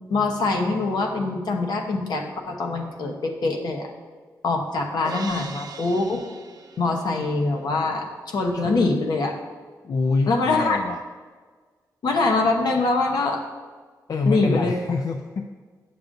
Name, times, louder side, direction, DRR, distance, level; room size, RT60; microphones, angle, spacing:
voice 1, 0.1-3.9 4.4-6.2 6.8-9.4 10.3-10.8 12.0-13.4 14.2-14.8, left 3 dB, 75° left, 2 dB, 0.9 m, -24 dB
Crash cymbal, 5.0-7.3, right 5 dB, 65° right, 0.5 m, -39 dB
voice 2, 9.8-11.0 14.1-15.5, left 3 dB, 55° left, 5 dB, 0.3 m, -26 dB
9.8 x 6.8 x 2.6 m, 1.5 s
wide cardioid pair, 120°, 7 cm